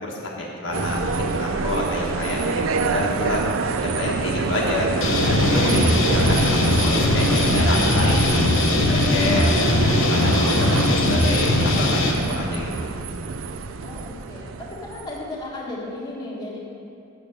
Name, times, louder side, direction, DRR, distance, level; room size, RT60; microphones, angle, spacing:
voice 1, 0.0-3.4 3.8-4.9 5.2-8.3 8.7-12.7, left 1 dB, 70° left, -4 dB, 1.5 m, -28 dB
sound 1, 0.7-15.2, right 4 dB, 90° right, 0.5 m, -26 dB
sound 2, 5.0-12.1, left 2 dB, 85° left, 1.0 m, -20 dB
voice 2, 5.9-6.6 13.8-16.6, left 2 dB, 20° left, -6 dB, 1.6 m, -36 dB
6.8 x 6.8 x 6.4 m, 2.4 s
head